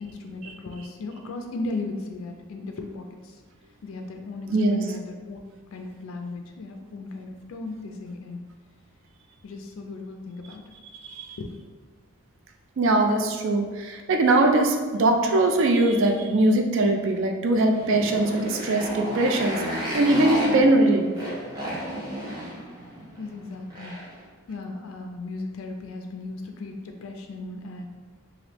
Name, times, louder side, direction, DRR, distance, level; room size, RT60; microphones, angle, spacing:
voice 1, 0.0-3.4 3.8-8.4 9.4-10.6 11.4-11.5 20.4-20.7 23.2-24.0 24.5-27.9, left 3 dB, 65° left, 4 dB, 0.3 m, -36 dB
voice 2, 11.0-11.4 12.8-21.1, right 2 dB, 60° right, 3 dB, 0.4 m, -21 dB
Motorcycle, 17.6-24.2, equal, 15° right, 0.8 m, -33 dB
3.2 x 2.5 x 3.0 m, 1.4 s
head